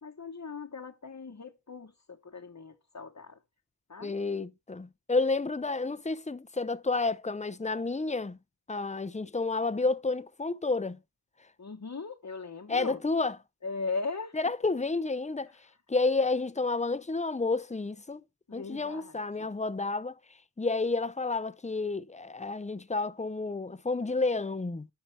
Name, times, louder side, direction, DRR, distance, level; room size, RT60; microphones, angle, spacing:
voice 1, 0.0-3.4 3.9-4.1 11.6-13.0 13.6-14.4 18.5-19.5, left 4 dB, 50° left, 1.1 m, -39 dB
voice 2, 4.0-8.4 8.7-11.0 12.7-13.3 14.3-18.2 18.5-24.9, left 3 dB, 20° left, 0.7 m, -30 dB
10.0 x 5.8 x 3.3 m
wide cardioid pair, 60°, 38 cm